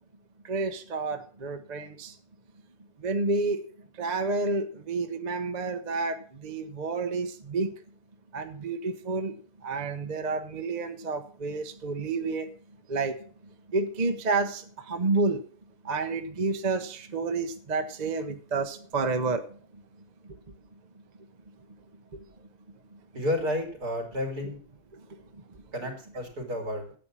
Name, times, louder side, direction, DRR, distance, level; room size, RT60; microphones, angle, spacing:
voice 1, 0.4-2.2 3.0-3.6 4.0-7.7 8.3-12.5 12.9-13.2 13.7-15.4 15.8-19.8 22.1-22.2 22.9-23.0 25.1-25.6, right 3 dB, 35° right, 7 dB, 0.9 m, -30 dB
voice 2, 23.1-24.6 25.7-26.9, left 1 dB, 75° right, 3 dB, 3.8 m, -31 dB
10.0 x 8.7 x 6.2 m, 0.42 s
omnidirectional pair, 1.7 m